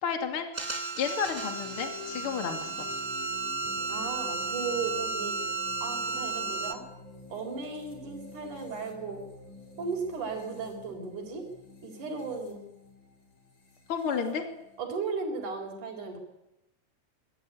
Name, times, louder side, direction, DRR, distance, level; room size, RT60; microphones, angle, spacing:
voice 1, 0.0-0.5 1.0-2.9 13.9-14.4, left 7 dB, 45° left, 4 dB, 3.2 m, -31 dB
sound 1, 0.5-6.7, right 4 dB, 35° right, 0.6 m, -33 dB
sound 2, 1.2-14.8, left 4 dB, 70° left, 5.9 m, -49 dB
voice 2, 3.9-5.4 5.8-6.8 7.3-9.3 9.8-11.4 11.8-12.7 14.1-14.4 14.8-16.2, right 4 dB, 75° right, -1 dB, 5.6 m, -36 dB
25.5 x 21.0 x 10.0 m, 0.92 s
omnidirectional pair, 3.6 m